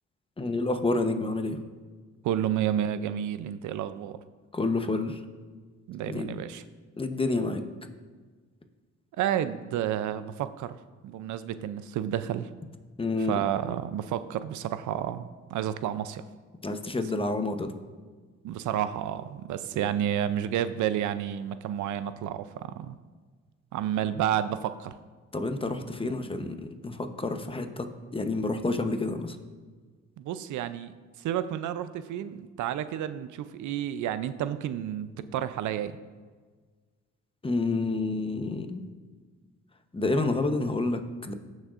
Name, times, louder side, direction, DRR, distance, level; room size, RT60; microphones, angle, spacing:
voice 1, 0.4-1.6 4.5-5.2 6.0-6.4 7.0-7.6 13.0-13.4 16.6-17.7 19.8-19.9 25.3-29.4 37.4-38.9 39.9-41.3, left 2 dB, 20° left, 7 dB, 0.8 m, -29 dB
voice 2, 2.2-4.2 5.9-6.6 9.2-10.7 11.0-12.5 13.3-16.2 18.4-23.0 23.7-24.9 30.2-36.0, right 10 dB, 75° right, 12 dB, 0.5 m, -30 dB
16.0 x 6.3 x 2.5 m, 1.4 s
cardioid pair, 90°, 30 cm